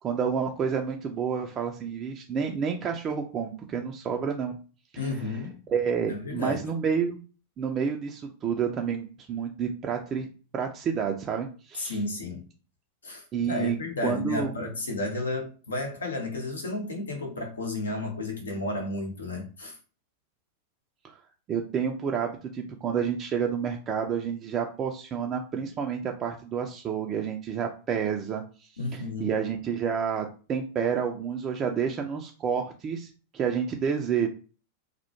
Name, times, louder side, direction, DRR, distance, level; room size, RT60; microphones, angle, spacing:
voice 1, 0.0-4.6 4.9-5.0 5.7-7.2 7.6-10.3 10.5-12.0 13.3-13.8 14.0-14.5 21.0-21.2 21.5-34.3, right 7 dB, 30° right, 0.3 m, -29 dB
voice 2, 5.0-5.5 6.1-6.6 11.7-12.4 13.0-19.8 28.8-29.4, left 2 dB, 70° left, 0.7 m, -32 dB
2.1 x 2.1 x 2.9 m
figure-of-eight pair, 90°, 0 cm